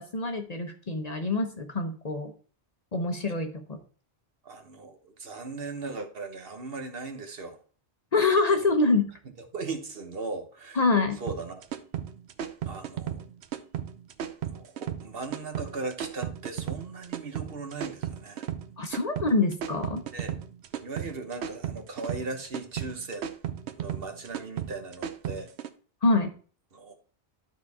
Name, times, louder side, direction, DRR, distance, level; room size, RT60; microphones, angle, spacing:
voice 1, 0.0-2.3 2.9-3.8 8.1-9.1 10.8-11.2 18.8-20.0 26.0-26.3, left 3 dB, 40° left, 5 dB, 0.9 m, -25 dB
voice 2, 4.4-7.6 8.6-8.7 9.4-10.8 11.2-11.6 12.7-13.2 14.5-18.5 20.1-20.4 20.7-23.3 23.8-25.5 26.7-26.9, right 3 dB, 60° right, 6 dB, 1.3 m, -38 dB
sound 1, 11.3-25.7, right 9 dB, 80° right, 0.9 m, -35 dB
12.0 x 4.1 x 3.5 m, 0.40 s
omnidirectional pair, 1.1 m